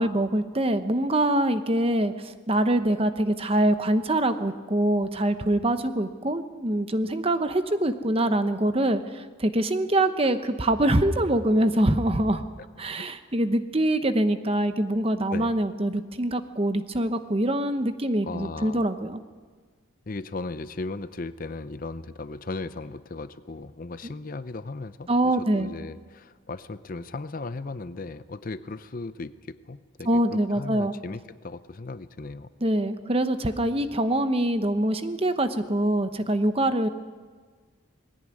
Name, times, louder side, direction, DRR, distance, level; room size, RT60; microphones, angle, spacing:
voice 1, 0.0-12.4 12.8-19.2 24.0-24.1 25.1-25.7 30.1-30.9 32.6-36.9, right 1 dB, 25° right, 10 dB, 0.9 m, -24 dB
voice 2, 18.2-18.9 20.1-32.5, left 3 dB, 40° left, 13 dB, 0.6 m, -37 dB
19.5 x 17.0 x 9.6 m, 1.5 s
head